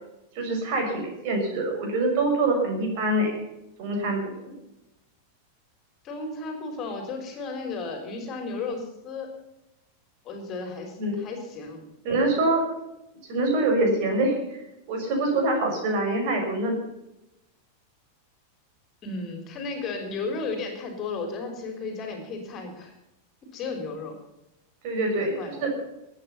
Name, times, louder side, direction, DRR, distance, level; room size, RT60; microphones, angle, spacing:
voice 1, 0.3-3.4 3.8-4.6 11.0-11.2 12.0-12.6 13.3-14.6 14.9-16.8 24.8-25.7, right 2 dB, 45° right, 2 dB, 6.2 m, -25 dB
voice 2, 6.0-9.3 10.2-11.8 19.0-22.9 23.5-24.2 25.2-25.5, left 3 dB, 30° left, 4 dB, 4.0 m, -34 dB
21.0 x 9.3 x 5.7 m, 0.90 s
figure-of-eight pair, 90°, 0 cm